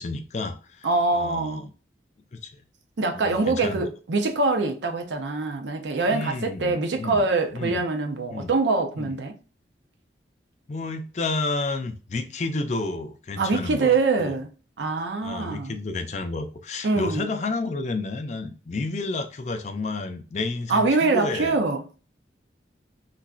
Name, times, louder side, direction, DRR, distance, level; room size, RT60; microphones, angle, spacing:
voice 1, 0.0-0.9 1.1-1.7 2.3-2.5 3.1-3.9 6.0-7.2 7.5-7.8 8.3-8.5 9.0-9.2 10.7-14.4 15.2-21.6, left 3 dB, 40° left, 0.4 m, -31 dB
voice 2, 0.8-1.7 3.0-9.3 13.4-14.5 14.8-15.8 16.8-17.3 20.7-21.8, right 3 dB, 85° right, 0.6 m, -24 dB
3.9 x 2.2 x 2.3 m
head